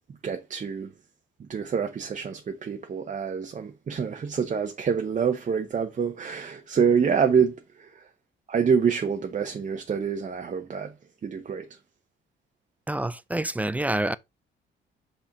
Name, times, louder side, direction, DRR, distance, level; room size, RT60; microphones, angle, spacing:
voice 1, 0.2-0.9 1.4-8.1 8.5-10.9 11.2-11.7, right 6 dB, 40° right, 0.8 m, -26 dB
voice 2, 12.9-14.2, right 1 dB, 10° right, 0.4 m, -27 dB
5.6 x 4.3 x 4.2 m
cardioid pair, 90°, 20 cm